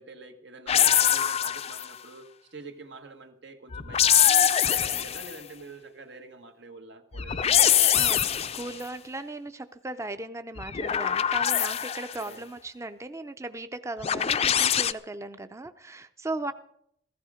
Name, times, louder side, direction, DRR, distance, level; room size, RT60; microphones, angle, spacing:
voice 1, 0.0-7.5 12.2-12.4, right 3 dB, 85° right, 5 dB, 1.5 m, -46 dB
sound 1, 0.7-2.0 3.7-5.4 7.1-8.8 10.6-12.2 14.0-14.9, left 9 dB, 35° left, 0.5 m, -23 dB
voice 2, 7.9-16.5, right 2 dB, 15° right, 10 dB, 0.5 m, -37 dB
15.5 x 14.5 x 5.0 m, 0.71 s
head